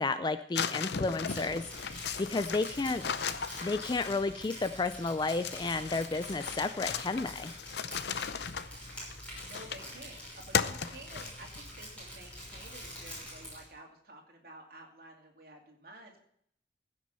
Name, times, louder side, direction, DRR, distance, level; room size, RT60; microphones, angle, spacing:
voice 1, 0.0-3.0 3.6-7.5, left 3 dB, 25° left, 11 dB, 0.3 m, -32 dB
sound 1, 0.6-4.4 5.3-10.0 10.5-11.6, left 7 dB, 70° left, 0.6 m, -36 dB
Crumpling crinkling, 1.1-13.7, equal, 5° left, 6.0 m, -46 dB
voice 2, 9.4-16.2, right 2 dB, 55° right, 1 dB, 2.5 m, -52 dB
15.5 x 6.2 x 5.5 m, 0.68 s
head